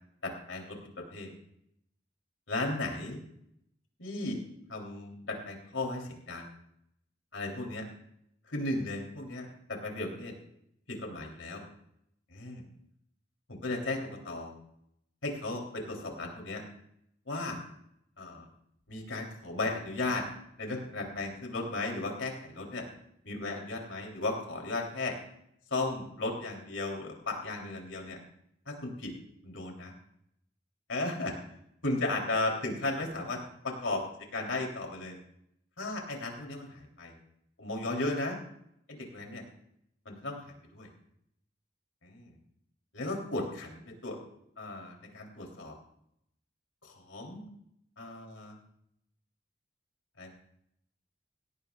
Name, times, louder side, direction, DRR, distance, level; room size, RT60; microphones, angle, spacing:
voice 1, 0.2-0.8 1.1-1.3 2.5-3.2 4.0-4.4 4.7-6.5 7.3-7.8 8.5-10.3 10.9-11.6 12.3-12.6 13.5-14.5 15.2-16.6 17.3-17.6 18.2-18.5 18.9-20.2 20.6-22.8 23.2-25.1 25.7-28.2 28.6-29.1 29.4-29.9 30.9-31.3 31.8-33.4 33.6-34.0 34.3-35.2 35.8-37.1 37.6-38.4 38.9-39.4 40.0-40.9 42.0-42.3 42.9-44.2 44.6-45.7 46.8-47.4 48.0-48.6 50.2-50.3, left 2 dB, 85° left, 1 dB, 3.3 m, -35 dB
18.0 x 16.0 x 2.4 m, 0.75 s
head